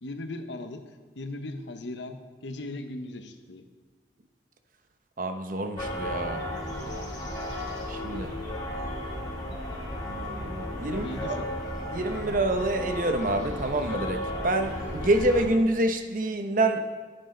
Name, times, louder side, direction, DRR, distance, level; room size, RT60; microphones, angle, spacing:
voice 1, 0.0-3.7 10.8-11.5, left 2 dB, 85° left, 8 dB, 1.0 m, -38 dB
voice 2, 5.2-6.4 7.9-8.3 10.0-11.4 11.9-16.8, right 2 dB, 50° right, 7 dB, 0.9 m, -27 dB
sound 1, 5.8-15.4, left 1 dB, 25° left, 3.4 m, -34 dB
14.0 x 11.0 x 3.9 m, 1.4 s
head